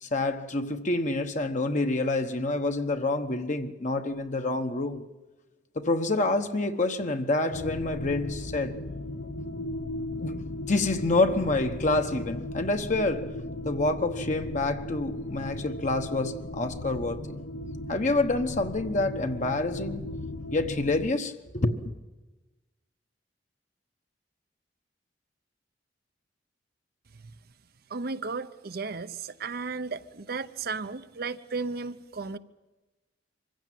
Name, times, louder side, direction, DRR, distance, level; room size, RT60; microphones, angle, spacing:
voice 1, 0.0-5.0 5.7-8.8 10.2-13.3 13.6-17.4 17.9-20.1 20.5-21.8, left 2 dB, 45° left, 1.1 m, -27 dB
sound 1, 7.5-21.1, left 1 dB, 65° left, 1.1 m, -36 dB
voice 2, 27.9-32.4, right 4 dB, 60° right, 0.8 m, -34 dB
24.5 x 16.0 x 9.3 m
head